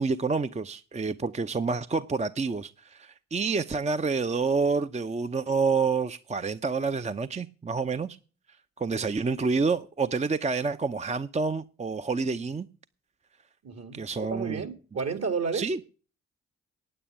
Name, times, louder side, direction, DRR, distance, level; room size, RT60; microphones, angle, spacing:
voice 1, 0.0-8.2 8.8-12.7 13.9-14.6 15.5-15.8, right 4 dB, 20° right, 0.6 m, -28 dB
voice 2, 13.6-15.7, right 5 dB, 50° right, 2.1 m, -32 dB
9.2 x 8.8 x 8.7 m
hypercardioid pair, 40°, 32 cm